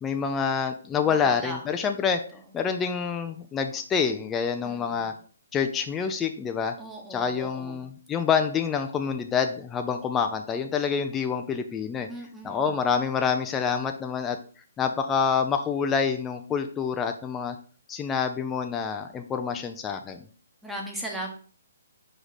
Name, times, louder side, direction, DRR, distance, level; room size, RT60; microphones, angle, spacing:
voice 1, 0.0-2.2 2.5-5.1 5.5-6.8 7.1-12.1 12.4-14.4 14.8-17.6 17.9-20.2, left 6 dB, 15° left, 5 dB, 0.4 m, -27 dB
voice 2, 1.0-1.6 4.6-5.2 6.8-7.8 12.1-12.7 20.6-21.3, right 1 dB, 5° right, 0 dB, 1.2 m, -38 dB
5.0 x 4.9 x 4.1 m, 0.43 s
hypercardioid pair, 150°, 0 cm